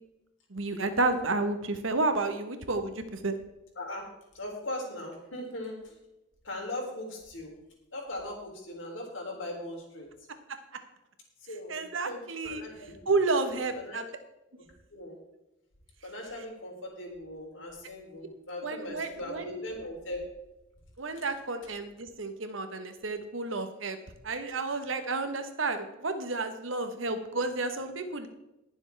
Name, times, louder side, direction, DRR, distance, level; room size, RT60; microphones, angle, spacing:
voice 1, 0.5-3.4 10.5-10.6 11.7-12.6 13.1-14.1 18.6-19.6 21.0-24.0 24.2-28.3, right 3 dB, 80° right, 8 dB, 1.3 m, -31 dB
voice 2, 4.3-5.9 6.4-7.5 7.9-10.1 11.5-13.0 13.8-14.0 14.9-15.2 16.0-20.2 26.9-27.1, left 1 dB, 75° left, 0 dB, 3.5 m, -39 dB
20.5 x 7.1 x 3.5 m, 0.94 s
head